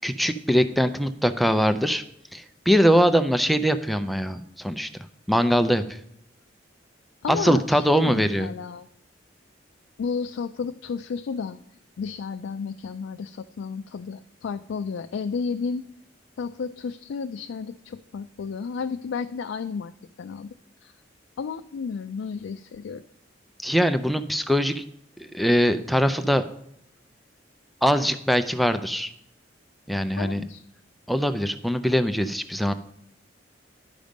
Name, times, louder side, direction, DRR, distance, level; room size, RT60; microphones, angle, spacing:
voice 1, 0.0-2.0 2.3-4.9 5.3-6.0 7.3-8.5 23.6-24.8 25.2-26.4 27.8-29.1 29.9-30.4 31.1-32.7, equal, ahead, 9 dB, 0.3 m, -22 dB
voice 2, 7.2-8.9 10.0-11.6 12.0-15.9 16.4-20.5 20.8-20.9 21.4-23.0 30.2-30.6, left 5 dB, 80° left, 8 dB, 0.3 m, -32 dB
11.5 x 5.1 x 5.2 m, 0.74 s
head